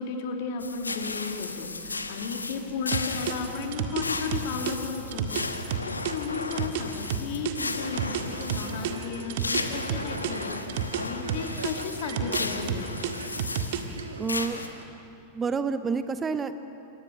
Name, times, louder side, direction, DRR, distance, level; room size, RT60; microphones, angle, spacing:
voice 1, 0.0-5.4 5.8-13.0, left 5 dB, 50° left, 3 dB, 3.1 m, -34 dB
sound 1, 0.6-14.7, left 3 dB, 80° left, 1.3 m, -35 dB
sound 2, 2.9-7.5 8.0-11.0 11.3-14.0, right 9 dB, 55° right, 1.9 m, -30 dB
Male speech man speaking, 7.5-14.8, right 3 dB, 75° right, 1.9 m, -41 dB
voice 2, 14.2-14.6 15.3-16.5, right 5 dB, 20° right, 11 dB, 0.9 m, -28 dB
28.0 x 24.5 x 6.6 m, 2.9 s
figure-of-eight pair, 90°, 0 cm